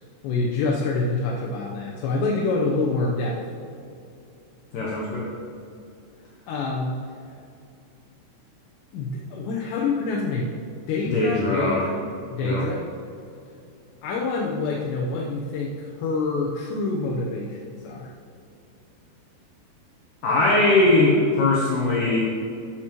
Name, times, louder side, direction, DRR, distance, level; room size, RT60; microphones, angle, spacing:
voice 1, 0.2-3.4 6.5-7.0 8.9-10.5 10.9-12.0 12.3-12.8 14.0-18.1, left 3 dB, 85° left, -2 dB, 3.0 m, -26 dB
voice 2, 4.7-5.3 11.1-11.9 12.4-12.7 20.2-22.2, left 2 dB, 70° left, -5 dB, 2.1 m, -20 dB
12.0 x 7.2 x 3.0 m, 2.5 s
omnidirectional pair, 4.9 m